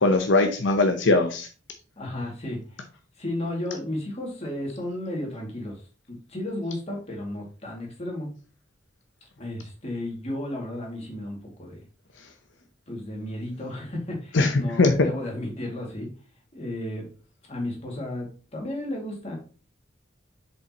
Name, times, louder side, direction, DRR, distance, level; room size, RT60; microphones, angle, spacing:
voice 1, 0.0-1.5 14.3-15.1, left 2 dB, 80° left, 5 dB, 0.8 m, -20 dB
voice 2, 2.0-2.8 3.2-5.8 6.1-8.3 9.2-11.8 12.9-16.1 16.5-17.1 17.5-19.4, left 1 dB, 35° left, 0 dB, 2.3 m, -33 dB
6.7 x 5.3 x 3.0 m, 0.36 s
head